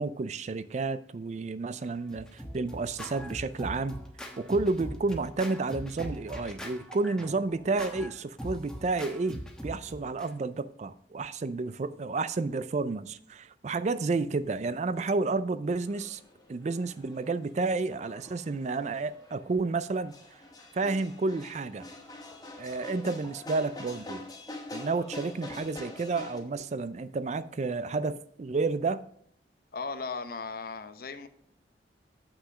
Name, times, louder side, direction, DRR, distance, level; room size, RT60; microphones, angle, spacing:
voice 1, 0.0-4.0 4.4-16.2 16.5-20.1 20.7-21.9 22.6-24.2 24.7-29.0, right 3 dB, 40° right, 0.4 m, -31 dB
Scratching (performance technique), 1.8-10.3, equal, 5° left, 1.0 m, -41 dB
sound 1, 15.8-26.4, left 2 dB, 20° left, 1.6 m, -45 dB
voice 2, 29.7-31.3, left 4 dB, 55° left, 0.8 m, -37 dB
7.9 x 5.9 x 4.9 m
head